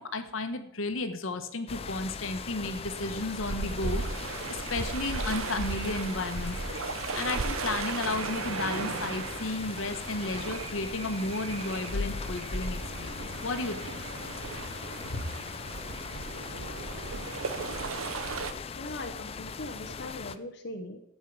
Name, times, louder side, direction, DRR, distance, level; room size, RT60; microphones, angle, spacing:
voice 1, 0.0-6.6 7.1-14.0 15.1-15.2, left 2 dB, 80° left, 8 dB, 1.1 m, -33 dB
sound 1, 1.7-20.4, left 5 dB, 30° left, 0.3 m, -40 dB
sound 2, 2.3-18.5, right 4 dB, 90° right, 0.8 m, -36 dB
voice 2, 18.8-21.0, left 1 dB, 55° left, 3 dB, 0.8 m, -40 dB
15.0 x 5.5 x 4.7 m, 0.78 s
head